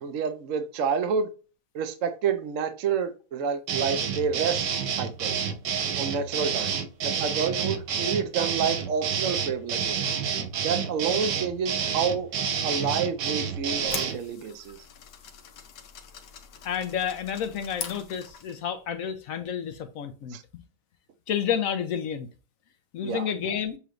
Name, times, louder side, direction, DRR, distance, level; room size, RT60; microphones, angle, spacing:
voice 1, 0.0-1.3 1.7-5.3 6.0-6.8 7.0-10.0 10.6-12.3 12.6-14.8 20.3-20.4 23.0-23.3, right 6 dB, 60° right, 0.9 m, -29 dB
sound 1, 3.7-14.2, right 7 dB, 85° right, 1.4 m, -29 dB
sound 2, 13.5-18.7, left 7 dB, 85° left, 1.5 m, -42 dB
voice 2, 16.6-20.4 21.3-22.3 22.9-23.8, left 8 dB, 65° left, 0.9 m, -30 dB
6.8 x 3.1 x 2.5 m
omnidirectional pair, 1.8 m